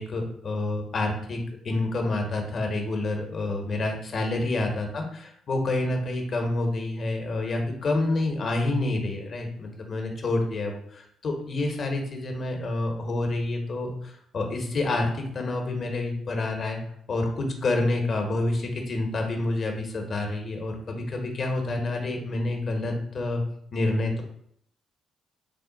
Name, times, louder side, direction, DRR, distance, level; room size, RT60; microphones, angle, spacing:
voice 1, 0.0-16.8 17.1-23.4 23.7-24.2, left 2 dB, 50° left, 3 dB, 0.8 m, -28 dB
3.6 x 2.1 x 3.8 m, 0.68 s
cardioid pair, 90°, 0 cm